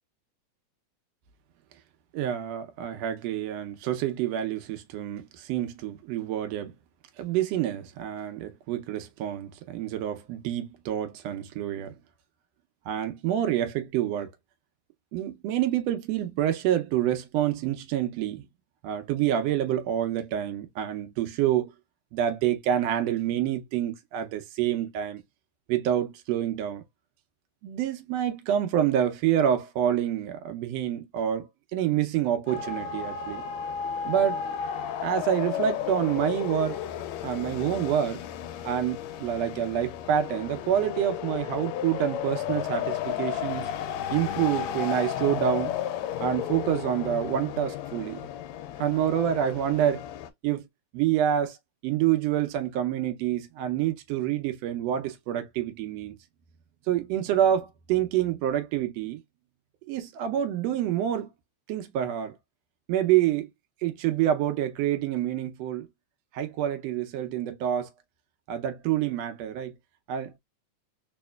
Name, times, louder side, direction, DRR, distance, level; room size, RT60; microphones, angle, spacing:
voice 1, 2.1-6.7 7.2-11.9 12.9-14.3 15.1-18.5 18.8-21.7 22.1-25.2 25.7-26.8 27.6-33.4 34.0-34.4 35.0-36.8 37.2-38.2 38.7-43.7 44.1-45.8 46.2-48.2 48.8-50.0 50.4-50.6 50.9-51.6 51.8-56.2 56.9-59.2 59.9-61.3 61.7-62.3 62.9-63.5 63.8-65.9 66.3-67.9 68.5-69.7 70.1-70.3, right 10 dB, 75° right, 1.6 m, -27 dB
sound 1, 32.5-50.3, left 9 dB, 80° left, 1.7 m, -33 dB
4.3 x 2.9 x 2.3 m
omnidirectional pair, 3.4 m